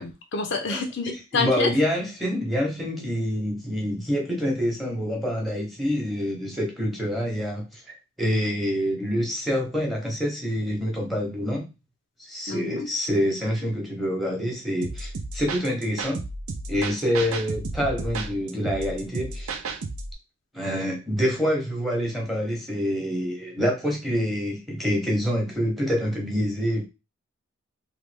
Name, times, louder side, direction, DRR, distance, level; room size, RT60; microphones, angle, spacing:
voice 1, 0.0-1.7 12.5-12.9, left 4 dB, 55° left, 0.5 m, -28 dB
voice 2, 1.3-11.7 12.2-16.2 16.7-19.5 20.5-26.9, equal, ahead, 0.9 m, -26 dB
sound 1, 14.8-20.1, right 3 dB, 75° right, 0.5 m, -33 dB
3.2 x 2.3 x 3.3 m
head